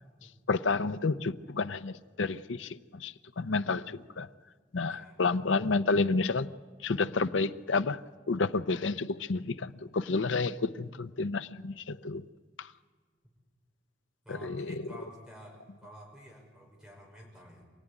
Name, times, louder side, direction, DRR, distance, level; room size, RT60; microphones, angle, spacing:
voice 1, 0.5-4.3 4.7-6.5 6.8-8.0 8.3-12.3 12.6-12.7 14.3-14.8, left 3 dB, 85° left, 0.7 m, -30 dB
voice 2, 4.8-5.2 14.2-17.6, equal, 5° right, 5.5 m, -51 dB
26.0 x 16.0 x 9.9 m
head